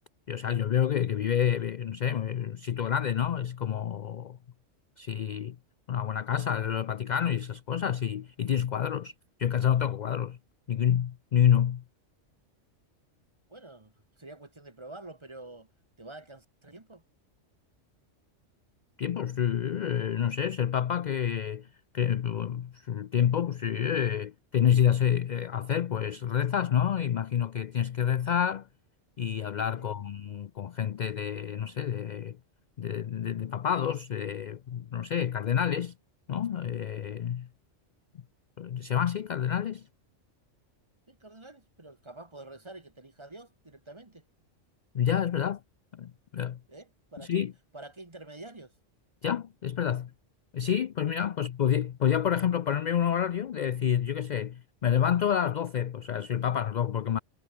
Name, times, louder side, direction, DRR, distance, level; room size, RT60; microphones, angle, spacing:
voice 1, 0.3-4.4 5.0-5.6 5.9-9.1 9.4-10.4 10.7-11.8 19.0-21.7 21.9-28.7 29.2-32.4 32.8-35.9 36.3-37.5 38.6-39.9 44.9-45.6 45.9-46.6 47.3-47.5 49.2-50.1 50.5-57.2, left 9 dB, 60° left, 0.5 m, -28 dB
voice 2, 13.5-15.7 16.0-17.0 29.8-30.1 41.1-44.2 46.7-47.5 47.7-48.8 51.3-51.5, right 2 dB, 25° right, 1.5 m, -47 dB
omnidirectional pair, 1.3 m